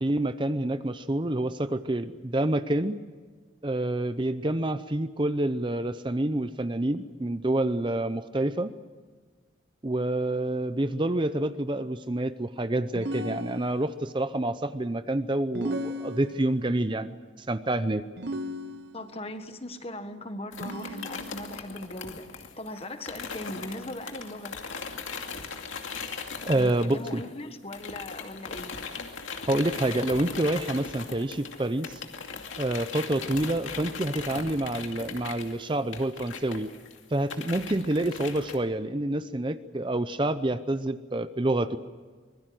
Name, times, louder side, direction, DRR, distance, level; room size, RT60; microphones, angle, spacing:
voice 1, 0.0-3.0 3.6-8.7 9.8-17.1 17.4-18.0 26.5-27.2 29.5-32.0 32.6-36.7 37.1-41.8, right 1 dB, 25° right, 0.6 m, -28 dB
sound 1, 12.9-14.1 15.5-16.7 18.2-19.2 20.6-21.6, equal, 60° right, 1.2 m, -36 dB
voice 2, 18.9-24.5 26.5-28.7, left 1 dB, 30° left, 1.5 m, -39 dB
sound 2, 20.5-27.4 27.7-38.6, left 5 dB, 85° left, 2.4 m, -39 dB
25.0 x 21.5 x 7.7 m
head